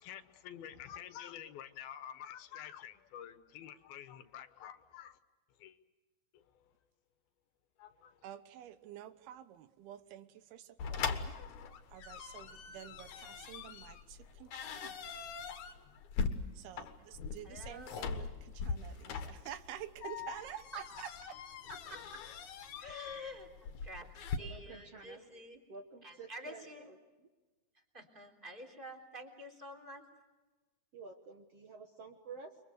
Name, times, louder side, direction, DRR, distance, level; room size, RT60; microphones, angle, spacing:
voice 1, 0.0-5.2 5.6-5.8 6.3-6.4 7.8-8.1, left 10 dB, 75° left, 3.0 m, -49 dB
voice 2, 8.2-11.4 11.9-15.1 15.4-15.5 16.5-21.4, right 11 dB, 85° right, 3.1 m, -49 dB
sound 1, 10.8-24.4, left 5 dB, 60° left, 2.5 m, -41 dB
voice 3, 17.4-18.1 20.7-20.8 21.7-22.3 22.8-24.1 24.4-25.6 26.0-26.9 27.7-30.1, equal, 15° right, 3.4 m, -48 dB
voice 4, 24.4-25.2 25.7-27.0 30.9-32.6, right 4 dB, 55° right, 2.0 m, -50 dB
29.5 x 24.0 x 6.7 m
omnidirectional pair, 4.4 m